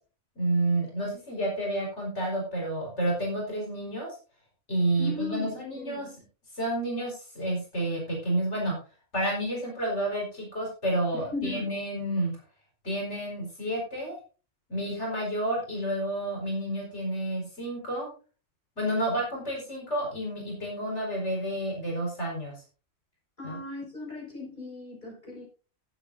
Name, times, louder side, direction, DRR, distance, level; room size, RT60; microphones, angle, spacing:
voice 1, 0.4-4.2 4.7-6.1 6.5-8.8 9.1-12.3 12.8-14.2 14.7-18.1 18.8-22.6 23.4-23.6, right 1 dB, 70° left, -2 dB, 5.2 m, -30 dB
voice 2, 5.0-6.1 11.1-11.7 23.4-25.4, left 2 dB, 40° left, -3 dB, 5.9 m, -37 dB
18.5 x 8.3 x 2.7 m, 0.36 s
omnidirectional pair, 1.2 m